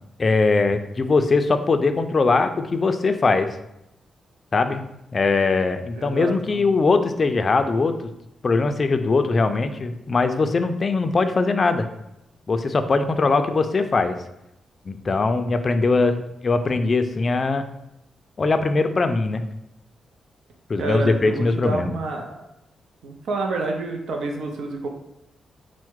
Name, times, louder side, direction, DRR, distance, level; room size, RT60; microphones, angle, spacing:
voice 1, 0.2-3.6 4.5-4.8 5.1-8.1 8.4-11.9 12.5-14.2 14.9-17.7 18.4-19.4 20.7-22.0, left 3 dB, 35° left, 8 dB, 0.3 m, -21 dB
voice 2, 5.9-6.6 20.8-22.4 23.0-24.9, right 3 dB, 85° right, 2 dB, 0.5 m, -28 dB
4.4 x 2.1 x 4.5 m, 0.84 s
wide cardioid pair, 130°, 0 cm